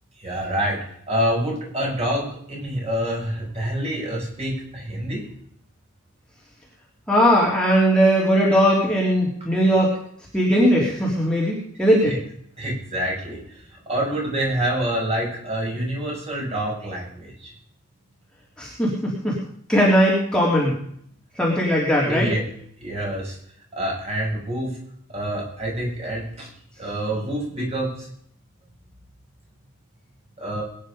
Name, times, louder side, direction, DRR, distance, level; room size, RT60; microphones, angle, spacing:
voice 1, 0.2-0.8 1.1-5.2 12.1-12.2 12.6-13.4 13.9-17.5 22.1-22.4 22.8-23.4 23.7-24.7 25.1-26.5 26.8-28.1 30.4-30.6, right 1 dB, 30° right, -3 dB, 6.7 m, -26 dB
voice 2, 7.1-9.9 10.3-12.2 18.6-19.4 19.7-20.7 21.3-22.3, equal, 5° left, -5 dB, 3.3 m, -19 dB
22.0 x 10.0 x 5.1 m, 0.66 s
head